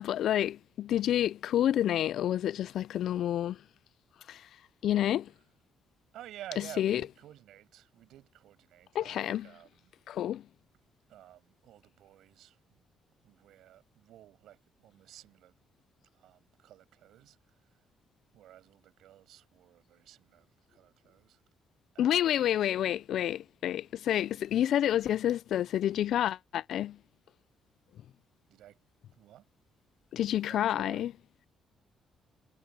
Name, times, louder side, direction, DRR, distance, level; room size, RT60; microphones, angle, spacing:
voice 1, 0.0-3.6 4.3-4.5 4.8-5.3 6.8-7.0 9.0-9.5 10.1-10.4 22.0-27.0 30.1-31.1, left 11 dB, 60° left, 0.3 m, -29 dB
voice 2, 6.1-9.9 11.1-12.8 13.2-15.5 16.1-17.4 18.3-21.4 21.9-22.7 28.5-28.8 29.1-29.4 30.4-31.1, right 13 dB, 80° right, 7.5 m, -52 dB
cardioid pair, 165°, 0 cm